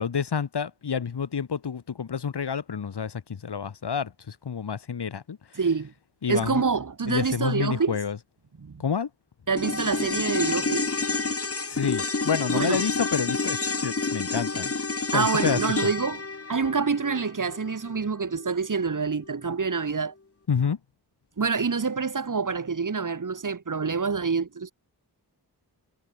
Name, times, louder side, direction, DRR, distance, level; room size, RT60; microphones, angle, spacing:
voice 1, 0.0-5.6 6.2-6.6 7.1-8.2 8.8-9.1 11.7-14.7 15.1-15.9 20.5-20.8, left 6 dB, 80° left, 6.8 m, -29 dB
voice 2, 5.6-5.9 6.3-8.0 8.6-8.8 9.5-10.9 12.5-12.8 15.1-16.2 16.5-20.1 21.4-24.7, right 5 dB, 50° right, 3.5 m, -26 dB
sound 1, 9.6-18.1 18.3-18.4, left 3 dB, 35° left, 3.8 m, -29 dB
wide cardioid pair, 85°, 40 cm